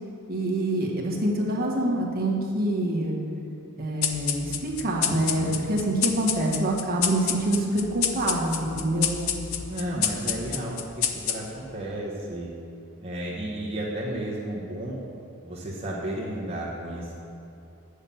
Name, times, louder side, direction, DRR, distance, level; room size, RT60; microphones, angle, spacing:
voice 1, 0.3-3.2 3.8-9.2, right 1 dB, 45° right, -2 dB, 1.5 m, -26 dB
sound 1, 4.0-11.8, left 8 dB, 65° left, 0.7 m, -30 dB
voice 2, 5.1-5.6 9.7-12.5 13.0-15.0 15.4-17.1, right 1 dB, 25° right, -7 dB, 1.1 m, -33 dB
8.8 x 6.4 x 7.2 m, 2.7 s
head